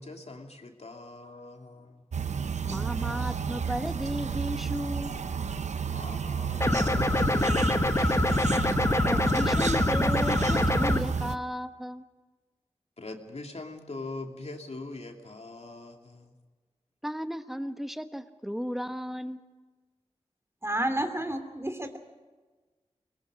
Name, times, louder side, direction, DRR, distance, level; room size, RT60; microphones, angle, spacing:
voice 1, 0.0-2.0 5.9-9.0 13.0-16.4, left 2 dB, 65° left, 3 dB, 2.6 m, -42 dB
sound 1, 2.1-11.4, right 6 dB, 80° right, 0.7 m, -31 dB
voice 2, 2.6-5.1 9.0-12.0 17.0-19.4, equal, ahead, 9 dB, 1.3 m, -34 dB
sound 2, 6.6-11.0, left 2 dB, 25° left, 1.0 m, -25 dB
voice 3, 20.6-22.0, right 1 dB, 25° right, 6 dB, 2.9 m, -30 dB
23.5 x 19.5 x 6.4 m, 1.3 s
cardioid pair, 40°, 12 cm